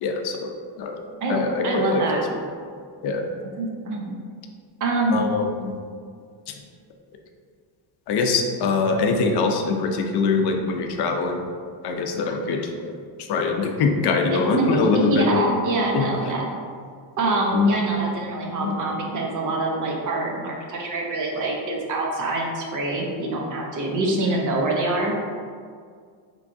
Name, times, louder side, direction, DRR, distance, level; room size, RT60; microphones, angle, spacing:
voice 1, 0.0-1.0 1.3-2.0 2.3-2.4 3.0-3.2 5.1-5.8 6.5-6.6 8.1-11.4 11.8-12.9 13.2-15.5 15.9-16.1 17.5-17.8 18.6-18.8, left 4 dB, 65° left, 3 dB, 0.5 m, -23 dB
voice 2, 1.6-2.2 3.6-4.2 4.8-5.2 14.3-16.5 17.2-25.1, right 2 dB, 45° right, 0 dB, 0.6 m, -25 dB
3.5 x 3.1 x 2.5 m, 2.1 s
cardioid pair, 145°, 42 cm